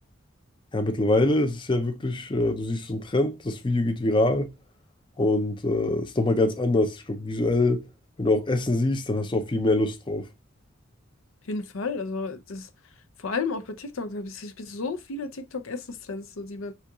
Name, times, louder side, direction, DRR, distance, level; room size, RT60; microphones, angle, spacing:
voice 1, 0.7-4.5 5.2-7.8 8.2-10.3, left 2 dB, 25° left, 0.5 m, -24 dB
voice 2, 11.4-12.7 13.2-16.7, left 4 dB, 75° left, 0.6 m, -33 dB
5.6 x 2.4 x 3.8 m
head